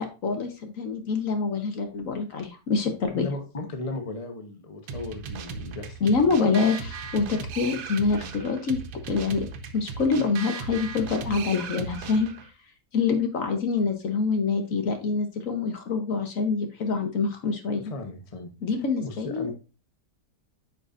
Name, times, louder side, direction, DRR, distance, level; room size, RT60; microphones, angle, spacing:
voice 1, 0.0-3.3 6.0-9.5 9.7-12.3 12.9-17.9 18.6-19.5, left 4 dB, 60° left, 5 dB, 1.4 m, -26 dB
voice 2, 3.1-6.3 11.3-11.4 17.8-18.5 19.0-19.5, left 2 dB, 25° left, 5 dB, 1.0 m, -36 dB
sound 1, 4.9-12.5, right 5 dB, 80° right, 1.4 m, -37 dB
9.2 x 5.3 x 2.5 m, 0.31 s
omnidirectional pair, 1.7 m